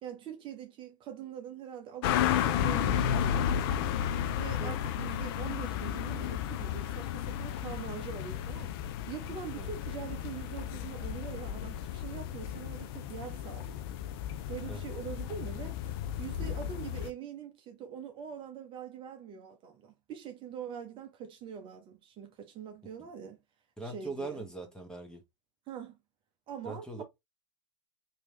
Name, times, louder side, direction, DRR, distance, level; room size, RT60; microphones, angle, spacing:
voice 1, 0.0-13.9 14.5-23.4 23.8-24.4 25.7-26.0 26.5-27.0, right 8 dB, 30° right, 0.8 m, -44 dB
sound 1, 2.0-17.1, left 9 dB, 50° left, 0.4 m, -33 dB
voice 2, 23.8-25.2 26.6-27.0, right 3 dB, 5° left, 1.1 m, -41 dB
3.2 x 2.8 x 3.1 m
hypercardioid pair, 105°, 16 cm